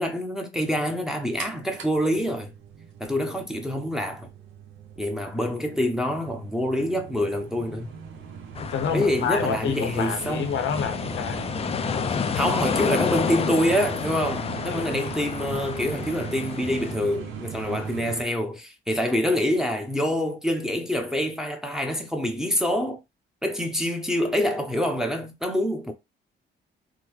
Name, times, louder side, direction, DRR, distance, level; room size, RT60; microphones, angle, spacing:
voice 1, 0.0-2.5 3.0-4.3 5.0-7.9 8.9-10.5 12.3-23.0 23.4-25.9, equal, ahead, 0.7 m, -26 dB
sound 1, 1.4-18.2, right 7 dB, 75° right, 0.8 m, -39 dB
voice 2, 8.6-11.4 14.7-15.0, left 7 dB, 70° left, 0.7 m, -28 dB
sound 2, 8.6-16.9, left 6 dB, 30° left, 0.3 m, -30 dB
3.7 x 2.1 x 3.0 m
cardioid pair, 90°, 20 cm